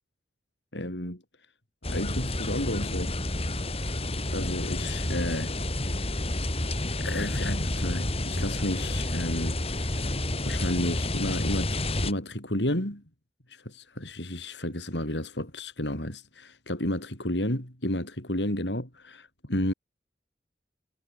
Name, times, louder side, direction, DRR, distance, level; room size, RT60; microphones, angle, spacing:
voice 1, 0.7-1.2 1.9-3.1 4.3-5.5 7.0-10.1 10.4-13.0 13.5-19.7, left 1 dB, 80° left, 7.7 m, -32 dB
sound 1, 1.8-12.1, left 1 dB, 35° left, 3.4 m, -30 dB
head